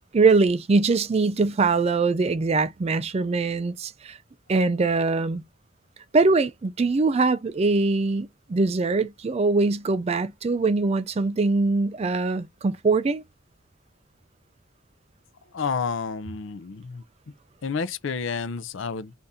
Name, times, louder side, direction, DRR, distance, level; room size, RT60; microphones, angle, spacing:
voice 1, 0.1-4.2 4.5-5.4 6.1-13.2, right 3 dB, 30° right, 0.4 m, -22 dB
voice 2, 15.5-17.0 17.6-19.1, left 5 dB, 65° left, 0.5 m, -30 dB
3.6 x 2.6 x 4.0 m
head